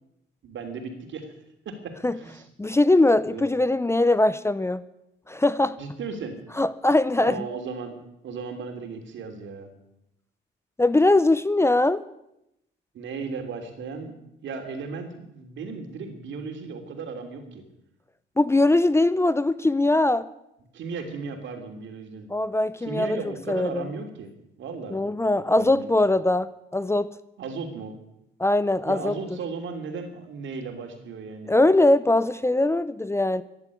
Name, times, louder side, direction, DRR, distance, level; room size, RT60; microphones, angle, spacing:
voice 1, 0.4-1.3 1.6-2.4 3.3-3.5 5.8-6.4 7.2-7.9 8.2-9.7 12.9-14.1 14.4-17.6 20.7-22.3 22.8-24.3 24.6-25.1 25.3-25.9 27.4-27.9 28.8-31.5, right 4 dB, 70° right, 5 dB, 3.2 m, -35 dB
voice 2, 2.6-4.8 5.3-5.8 6.6-7.5 10.8-12.0 18.4-20.3 22.3-23.2 23.5-23.9 24.9-27.1 28.4-29.1 31.5-33.4, left 2 dB, 15° left, 16 dB, 0.6 m, -21 dB
14.5 x 11.0 x 8.5 m, 0.84 s
cardioid pair, 90°, 20 cm